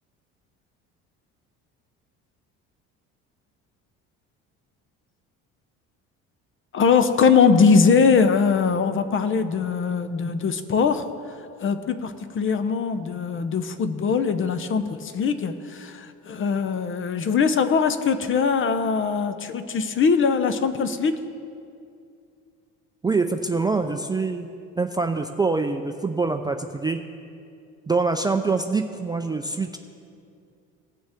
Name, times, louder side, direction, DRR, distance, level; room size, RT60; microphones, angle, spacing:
voice 1, 6.7-11.0 11.6-21.2, left 5 dB, 40° left, 10 dB, 0.7 m, -21 dB
voice 2, 23.0-24.5 24.8-27.0 27.9-29.8, right 4 dB, 15° right, 5 dB, 0.4 m, -24 dB
18.0 x 6.2 x 3.6 m, 2.4 s
supercardioid pair, 90°, 32 cm